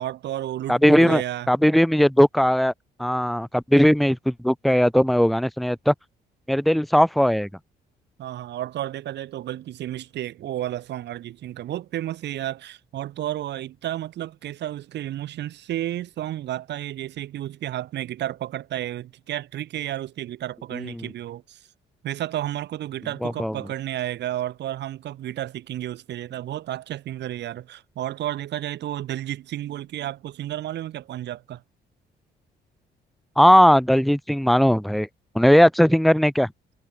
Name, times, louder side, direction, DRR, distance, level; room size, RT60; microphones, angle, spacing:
voice 1, 0.0-1.5 8.2-21.7 22.0-31.6, right 13 dB, 75° right, 5.9 m, -32 dB
voice 2, 0.7-1.2 1.5-2.7 3.0-5.9 6.5-7.5 20.7-21.1 23.2-23.6 33.4-35.1 35.3-36.5, equal, ahead, 1.5 m, -18 dB
cardioid pair, 115°, 18 cm